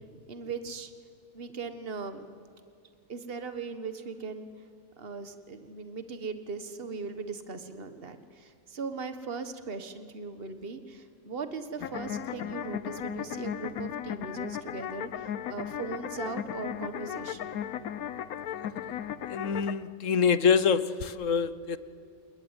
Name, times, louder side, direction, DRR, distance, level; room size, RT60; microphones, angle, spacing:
voice 1, 0.1-0.9 1.3-2.2 3.1-4.5 5.0-17.5, right 4 dB, 45° right, 10 dB, 1.7 m, -39 dB
sound 1, 11.8-19.7, left 9 dB, 90° left, 1.3 m, -36 dB
voice 2, 19.3-21.8, left 6 dB, 65° left, 15 dB, 1.3 m, -25 dB
28.5 x 20.0 x 9.8 m, 2.5 s
omnidirectional pair, 1.5 m